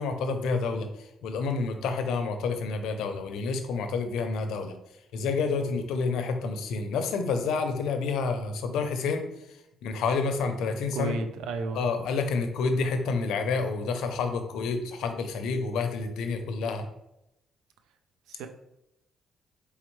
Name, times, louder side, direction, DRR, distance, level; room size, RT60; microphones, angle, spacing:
voice 1, 0.0-4.7 5.1-9.2 9.8-11.1 11.7-16.9, left 4 dB, 85° left, 7 dB, 0.5 m, -29 dB
voice 2, 10.9-12.1 18.3-18.5, right 3 dB, 90° right, 7 dB, 0.4 m, -33 dB
4.3 x 3.4 x 3.1 m, 0.86 s
cardioid pair, 90°, 0 cm